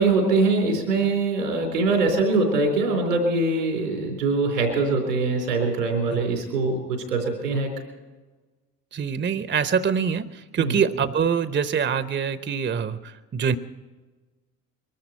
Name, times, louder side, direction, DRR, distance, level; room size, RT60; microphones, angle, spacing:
voice 1, 0.0-7.7 10.6-10.8, right 3 dB, 85° right, 3 dB, 4.0 m, -23 dB
voice 2, 8.9-13.6, right 7 dB, 25° right, 13 dB, 0.9 m, -25 dB
23.5 x 13.0 x 4.4 m, 1.3 s
hypercardioid pair, 55°, 46 cm